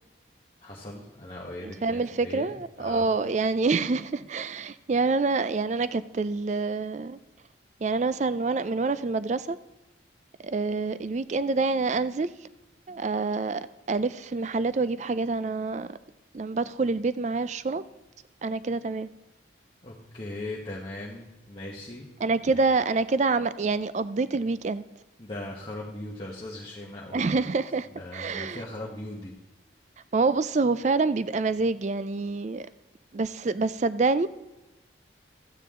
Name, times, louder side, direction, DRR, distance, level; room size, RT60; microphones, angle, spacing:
voice 1, 0.6-3.1 19.8-22.1 22.5-22.6 25.2-27.4 27.9-29.3, left 1 dB, 25° left, -5 dB, 1.2 m, -39 dB
voice 2, 1.6-7.2 7.8-9.6 10.4-12.3 12.9-16.0 16.3-17.8 18.4-19.1 22.2-24.8 27.1-28.6 30.1-32.7 33.1-34.3, right 3 dB, 40° right, 15 dB, 0.4 m, -27 dB
13.5 x 9.1 x 3.7 m, 1.0 s
head